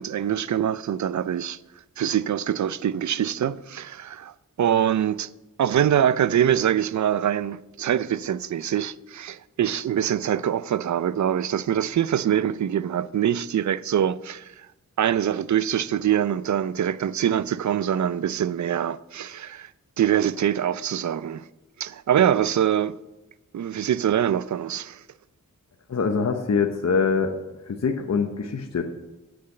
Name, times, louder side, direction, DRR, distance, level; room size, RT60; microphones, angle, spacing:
voice 1, 0.0-1.6 2.0-5.3 5.6-14.5 15.0-19.7 20.0-21.5 21.8-22.9 23.5-25.0, right 10 dB, 55° right, 0.5 m, -24 dB
voice 2, 25.9-27.3 27.7-28.8, left 5 dB, 50° left, 0.9 m, -24 dB
8.0 x 6.5 x 7.8 m
cardioid pair, 50°, 34 cm